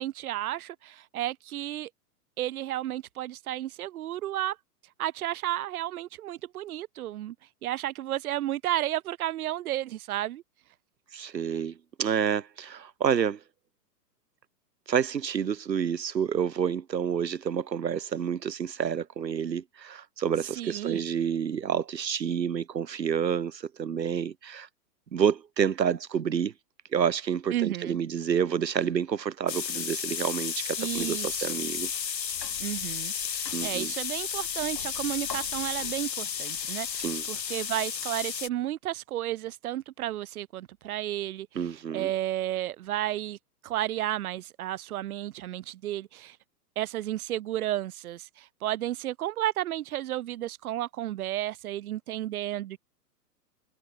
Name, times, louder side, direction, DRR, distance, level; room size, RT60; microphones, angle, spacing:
voice 1, 0.0-1.9 2.4-4.6 5.0-7.3 7.6-10.4 20.6-21.0 27.5-28.0 30.8-31.6 32.6-33.1 33.6-43.4 43.6-46.4 46.7-52.8, right 13 dB, 60° right, 5.1 m, -32 dB
voice 2, 11.1-13.4 14.9-24.7 25.1-26.5 26.9-31.9 33.5-33.9 37.0-37.2 41.5-42.1, right 7 dB, 85° right, 5.1 m, -29 dB
sound 1, 29.5-38.5, left 8 dB, 80° left, 4.9 m, -33 dB
hypercardioid pair, 130°, 49 cm